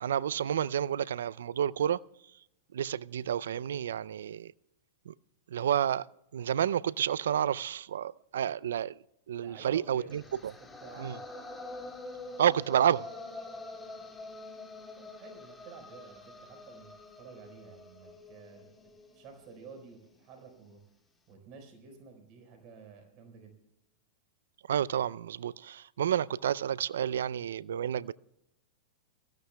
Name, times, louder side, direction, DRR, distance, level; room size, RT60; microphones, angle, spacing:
voice 1, 0.0-2.0 2.7-4.5 5.1-5.2 5.5-6.0 6.3-8.9 9.3-10.2 11.0-11.2 12.4-13.1 24.7-28.1, right 9 dB, 75° right, 0.4 m, -30 dB
voice 2, 9.4-10.4 10.7-11.2 14.9-18.7 19.1-20.8 21.3-23.5, right 5 dB, 45° right, 4.5 m, -51 dB
sound 1, 10.1-20.2, left 2 dB, 10° left, 3.3 m, -46 dB
24.0 x 15.5 x 2.3 m
hypercardioid pair, 105°, 0 cm